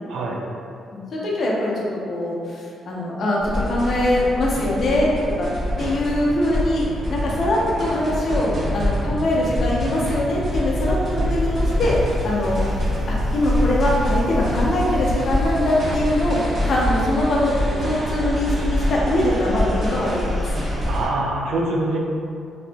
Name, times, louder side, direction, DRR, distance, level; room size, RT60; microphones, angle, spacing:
voice 1, 0.1-0.4 20.9-22.0, right 2 dB, 75° right, -2 dB, 0.4 m, -24 dB
voice 2, 0.9-5.1 5.4-5.5 5.8-12.0 12.2-12.6 13.3-20.5, left 1 dB, 60° left, -4 dB, 0.6 m, -22 dB
sound 1, 3.4-21.1, left 1 dB, 60° right, 0.8 m, -25 dB
2.7 x 2.4 x 2.2 m, 2.4 s
supercardioid pair, 60°, 0 cm